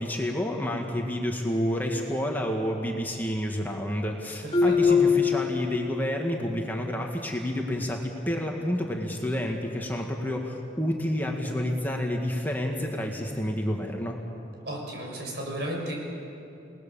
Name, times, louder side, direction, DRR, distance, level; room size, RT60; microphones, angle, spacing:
voice 1, 0.0-14.2, equal, 10° left, 1 dB, 1.8 m, -29 dB
voice 2, 4.4-5.0 14.6-16.0, right 1 dB, 65° right, 0 dB, 6.3 m, -34 dB
Marimba xylophone, 4.5-6.3, left 5 dB, 35° left, 2.4 m, -23 dB
28.5 x 19.0 x 7.0 m, 2.9 s
head